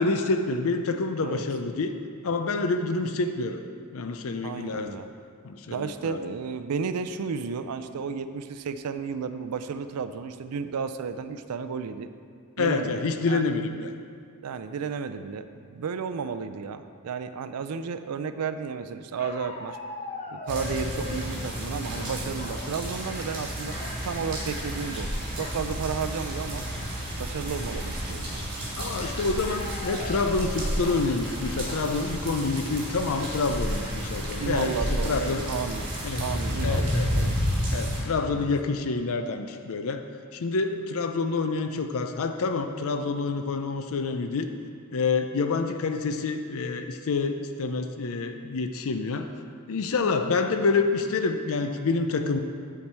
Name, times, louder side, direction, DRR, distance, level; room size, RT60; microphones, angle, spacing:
voice 1, 0.0-1.9 2.2-3.6 3.9-5.0 5.4-6.2 12.6-13.9 28.8-35.5 36.0-36.2 36.6-37.1 37.7-40.0 40.3-44.5 44.9-49.3 49.7-52.4, left 4 dB, 65° left, 6 dB, 0.5 m, -27 dB
voice 2, 4.4-5.1 5.7-12.1 12.6-13.4 14.4-19.8 20.3-23.8 24.0-25.1 25.4-26.6 27.2-28.5 34.4-35.9 36.2-37.4 38.3-38.5, right 5 dB, 85° right, 10 dB, 0.4 m, -33 dB
sound 1, 19.2-21.3 21.9-22.7 23.0-23.3 23.6-24.0 25.4-25.7 26.2-26.3 26.6-27.1 29.0-31.0 31.7-31.8, left 3 dB, 30° left, 0.9 m, -40 dB
sound 2, 20.5-38.0, equal, 40° right, 2.6 m, -31 dB
8.6 x 4.7 x 7.3 m, 2.2 s
head